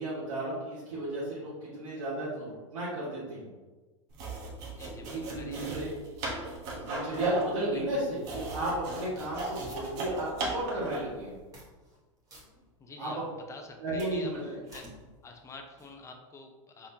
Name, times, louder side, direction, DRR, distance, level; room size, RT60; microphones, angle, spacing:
voice 1, 0.0-3.5 5.0-5.9 6.7-11.3 13.0-13.2 13.8-14.6, right 1 dB, 90° right, -10 dB, 1.5 m, -34 dB
sound 1, 4.1-11.2, right 2 dB, 55° right, 1.1 m, -37 dB
voice 2, 4.7-5.7 7.7-7.8 9.2-9.3 12.8-13.2 13.5-14.8 15.2-16.9, left 4 dB, 15° left, 3 dB, 0.6 m, -48 dB
sound 2, 9.0-10.4 10.8-10.9 11.4-12.0 12.3-13.2 13.6-16.0, equal, 20° right, 1.4 m, -54 dB
4.1 x 3.7 x 2.8 m, 1.3 s
hypercardioid pair, 110°, 17 cm